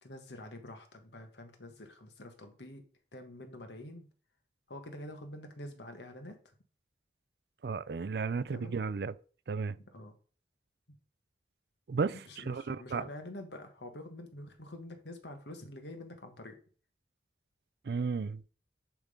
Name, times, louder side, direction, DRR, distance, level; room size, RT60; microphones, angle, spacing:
voice 1, 0.0-2.8 3.1-4.1 4.7-6.5 8.5-8.8 9.7-10.1 12.1-16.6, left 1 dB, 75° left, 1.6 m, -47 dB
voice 2, 7.6-9.1 9.5-9.8 11.9-13.1 17.8-18.5, right 4 dB, 60° right, 0.4 m, -34 dB
10.5 x 3.8 x 5.1 m
head